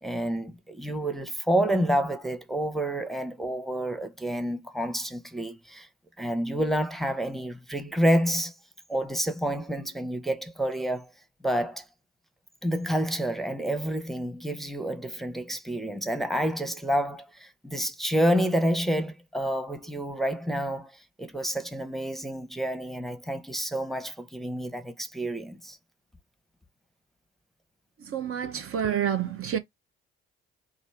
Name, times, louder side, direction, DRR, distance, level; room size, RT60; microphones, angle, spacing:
voice 1, 0.0-5.9 6.2-8.5 8.9-11.1 11.4-11.8 12.6-25.8, right 1 dB, ahead, 0.8 m, -29 dB
voice 2, 28.1-29.6, right 9 dB, 45° right, 0.7 m, -28 dB
3.3 x 2.5 x 4.4 m
figure-of-eight pair, 45°, 31 cm